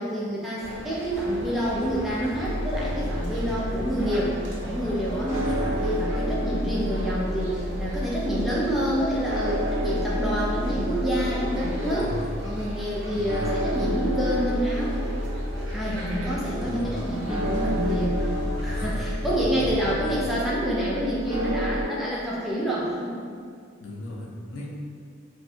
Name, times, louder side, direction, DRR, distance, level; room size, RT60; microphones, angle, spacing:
voice 1, 0.0-4.3 4.6-12.1 12.4-15.0 15.7-18.4 18.6-23.2, equal, ahead, -7 dB, 0.4 m, -28 dB
farmers market, 0.6-20.0, equal, 65° right, 0.6 m, -37 dB
sound 1, 2.4-21.9, equal, 25° left, 1.0 m, -30 dB
voice 2, 12.0-12.4 13.1-13.5 16.6-17.0 18.7-19.1 20.0-20.2 23.8-24.8, left 1 dB, 70° left, -3 dB, 0.5 m, -37 dB
2.6 x 2.1 x 3.7 m, 2.2 s
head